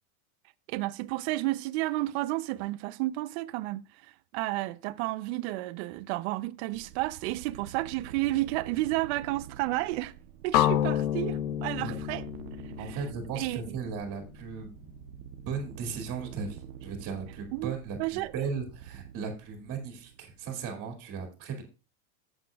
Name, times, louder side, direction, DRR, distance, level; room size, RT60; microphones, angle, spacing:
voice 1, 0.7-3.8 4.3-10.1 10.4-12.3 12.8-13.0 13.4-13.8 17.5-17.7 18.0-18.3, right 18 dB, 50° right, 0.7 m, -31 dB
sound 1, 6.7-21.0, right 10 dB, 75° right, 0.9 m, -47 dB
sound 2, 10.5-14.5, left 12 dB, 65° left, 0.8 m, -30 dB
voice 2, 12.8-14.7 15.5-21.6, right 5 dB, 30° right, 2.4 m, -36 dB
13.5 x 8.1 x 2.4 m
supercardioid pair, 140°, 43 cm